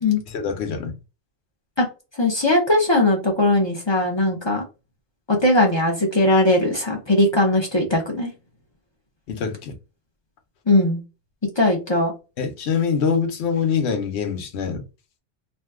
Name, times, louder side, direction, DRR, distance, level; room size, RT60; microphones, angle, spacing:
voice 1, 0.3-1.0 9.3-9.8 12.4-14.8, left 6 dB, 70° left, 0.9 m, -24 dB
voice 2, 2.2-4.6 5.3-8.3 10.7-11.0 11.6-12.1, left 1 dB, 30° left, 0.5 m, -19 dB
2.6 x 2.2 x 3.4 m
omnidirectional pair, 1.2 m